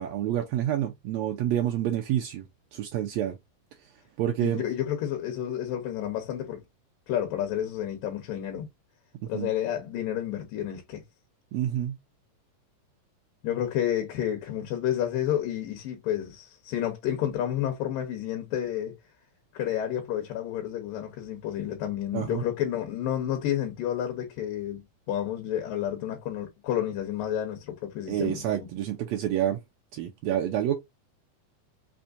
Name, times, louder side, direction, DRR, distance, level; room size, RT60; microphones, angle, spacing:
voice 1, 0.0-2.4 2.7-3.4 4.2-4.6 9.2-9.5 11.5-12.0 22.1-22.4 28.1-29.6 29.9-30.8, right 11 dB, 80° right, 1.6 m, -28 dB
voice 2, 4.4-6.6 7.1-8.7 9.3-11.0 13.4-19.0 19.5-28.5, left 11 dB, 85° left, 2.7 m, -30 dB
5.7 x 3.5 x 2.5 m
omnidirectional pair, 3.9 m